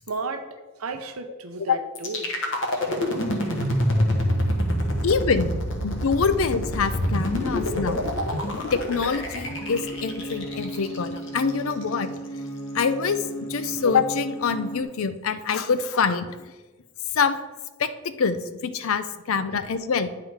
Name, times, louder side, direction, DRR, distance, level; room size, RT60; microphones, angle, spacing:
voice 1, 0.1-0.4 0.8-2.3 2.8-3.3 3.6-3.7 4.7-5.1 7.5-7.6 8.0-8.1 8.4-8.5, right 3 dB, 90° right, 7 dB, 0.7 m, -34 dB
sound 1, 2.0-11.9, equal, 60° left, 1.1 m, -26 dB
voice 2, 5.0-5.5 5.8-8.0 8.7-12.1 12.7-13.2 13.5-16.5 17.2-17.4 17.8-20.1, left 5 dB, 80° left, 12 dB, 0.5 m, -25 dB
sound 2, 9.4-14.8, right 2 dB, 25° left, 1.8 m, -35 dB
9.5 x 3.8 x 4.6 m, 1.2 s
head